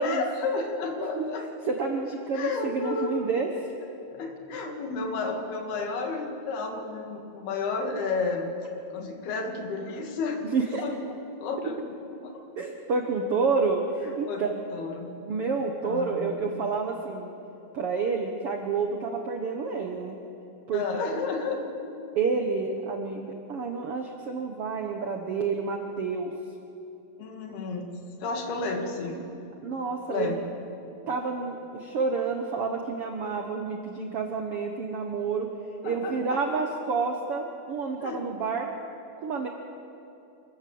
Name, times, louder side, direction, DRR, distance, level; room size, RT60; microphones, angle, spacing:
voice 1, 0.0-1.4 2.3-3.3 4.1-8.5 8.9-10.4 10.8-10.9 11.4-11.8 12.2-12.3 14.3-15.1 15.8-16.6 20.7-21.7 27.2-27.9 28.2-29.3 30.1-30.5 35.8-36.2 36.5-36.6 38.0-38.2, left 4 dB, 85° left, 3 dB, 4.0 m, -31 dB
voice 2, 1.0-1.3 1.7-3.5 10.5-10.8 12.6-14.5 15.2-17.3 17.7-20.2 20.7-20.8 22.1-26.3 29.6-30.4 31.1-35.5 35.8-38.7 39.2-39.5, right 4 dB, 75° right, 3 dB, 1.3 m, -29 dB
27.0 x 14.0 x 7.7 m, 2.8 s
omnidirectional pair, 4.4 m